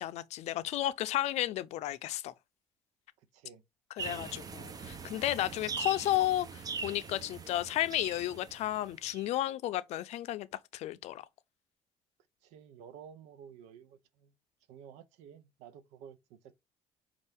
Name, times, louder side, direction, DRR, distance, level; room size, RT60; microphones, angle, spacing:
voice 1, 0.0-2.3 4.0-10.5 10.7-11.2, left 14 dB, 70° left, 0.5 m, -33 dB
sound 1, 4.0-9.3, right 5 dB, 30° right, 0.7 m, -42 dB
voice 2, 12.4-14.3 14.7-16.5, right 8 dB, 90° right, 0.6 m, -52 dB
5.4 x 2.4 x 3.4 m
cardioid pair, 100°, 12 cm